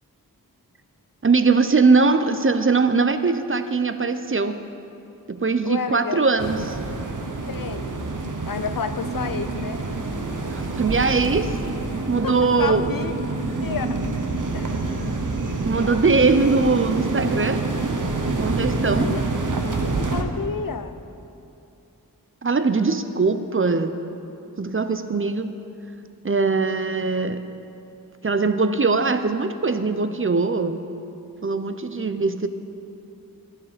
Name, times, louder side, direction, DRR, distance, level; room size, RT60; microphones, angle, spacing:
voice 1, 1.2-4.6 5.3-6.8 10.5-11.8 12.1-12.9 15.6-17.7 18.4-19.1 22.4-24.0 24.6-25.6 26.2-27.5 28.2-30.8 31.4-32.5, right 4 dB, 35° right, 10 dB, 0.6 m, -21 dB
voice 2, 5.6-6.2 7.5-7.9 8.5-9.8 12.0-13.1 13.6-14.0 14.5-14.8 18.9-19.2 19.8-21.0, left 6 dB, 70° left, 11 dB, 0.6 m, -31 dB
sound 1, 6.4-20.2, right 3 dB, 60° right, 1.0 m, -27 dB
12.0 x 11.0 x 5.0 m, 2.8 s
wide cardioid pair, 65°, 35 cm